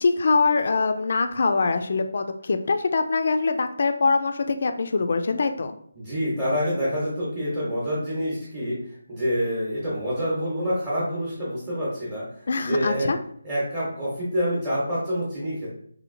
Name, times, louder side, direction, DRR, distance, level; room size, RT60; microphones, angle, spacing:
voice 1, 0.0-5.7 12.5-13.2, left 4 dB, 50° left, 7 dB, 0.3 m, -23 dB
voice 2, 5.9-13.1 13.4-15.7, equal, 15° right, -8 dB, 0.9 m, -27 dB
2.9 x 2.7 x 2.6 m, 0.63 s
figure-of-eight pair, 170°, 0 cm